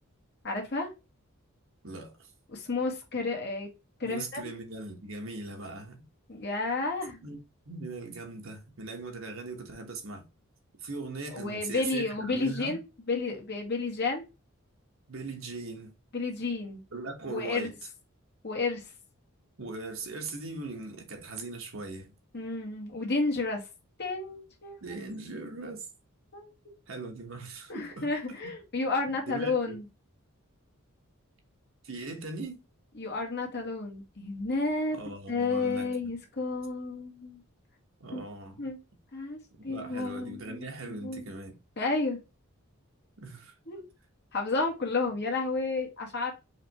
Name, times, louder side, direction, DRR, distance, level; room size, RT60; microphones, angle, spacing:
voice 1, 0.4-0.9 2.5-3.7 4.0-4.4 6.3-7.2 11.3-14.2 16.1-16.8 17.3-17.7 18.4-18.9 22.3-23.7 24.0-25.0 26.3-26.5 27.7-29.8 33.0-35.0 35.3-37.4 38.1-38.2 38.6-38.8 39.1-39.4 39.6-41.3 41.8-42.2 43.7-43.8 44.3-46.3, left 3 dB, 50° left, 1.9 m, -31 dB
voice 2, 1.8-2.3 4.0-6.0 7.2-7.4 7.7-10.2 10.8-12.8 15.1-15.9 16.9-17.7 19.6-22.1 24.8-25.9 26.9-28.1 28.4-28.5 29.3-29.8 31.8-32.6 34.9-36.1 38.0-38.7 39.6-41.5 43.2-43.5, right 3 dB, 65° right, 1.3 m, -40 dB
4.9 x 3.4 x 2.9 m
head